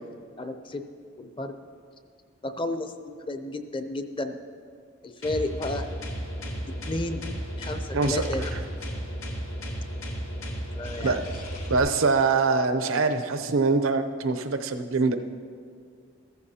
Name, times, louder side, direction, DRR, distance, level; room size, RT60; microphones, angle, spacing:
voice 1, 0.4-0.8 1.2-1.6 2.4-4.4 5.0-5.9 6.8-7.2 7.6-8.5 10.7-11.4, left 2 dB, 25° left, 8 dB, 0.6 m, -32 dB
sound 1, 5.2-11.8, equal, 90° left, 2.1 m, -34 dB
voice 2, 11.7-15.2, right 4 dB, 90° right, 8 dB, 0.7 m, -24 dB
14.5 x 14.0 x 2.8 m, 2.2 s
head